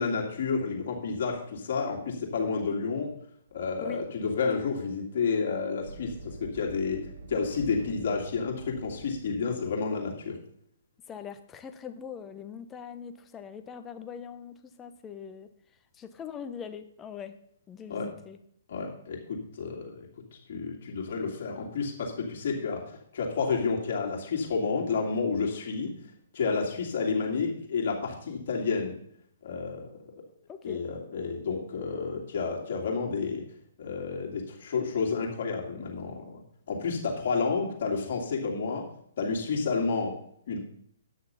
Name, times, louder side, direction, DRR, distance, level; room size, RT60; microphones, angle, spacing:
voice 1, 0.0-3.1 3.5-7.0 7.3-10.4 17.9-18.1 18.7-20.1 20.5-25.9 26.3-28.9 29.4-30.0 30.6-33.4 33.8-36.4 36.7-38.9 39.2-40.1 40.5-40.6, left 5 dB, 55° left, -1 dB, 2.8 m, -30 dB
sound 1, 4.5-4.6 5.7-9.4, right 3 dB, 75° right, 1.7 m, -45 dB
voice 2, 11.1-15.5 16.0-17.3 17.7-18.4 30.5-30.8, left 7 dB, 20° left, 8 dB, 0.9 m, -42 dB
9.2 x 6.4 x 5.7 m, 0.68 s
hypercardioid pair, 130°, 0 cm